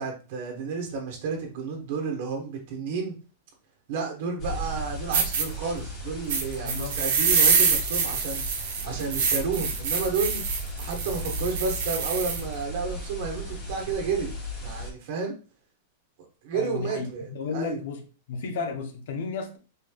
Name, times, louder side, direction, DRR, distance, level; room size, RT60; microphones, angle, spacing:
voice 1, 0.0-3.1 3.9-8.4 8.8-10.4 10.8-14.3 14.6-15.4 16.4-17.8, right 5 dB, 55° right, 1.2 m, -31 dB
sound 1, 4.4-14.9, equal, 30° left, 1.2 m, -36 dB
sound 2, 4.7-4.8 5.1-5.4 6.3-12.4, right 6 dB, 75° right, 1.1 m, -25 dB
voice 2, 6.6-7.0 9.3-9.4 16.5-18.0 18.3-19.6, left 5 dB, 65° left, 0.8 m, -33 dB
4.4 x 3.2 x 2.3 m
supercardioid pair, 165°, 0 cm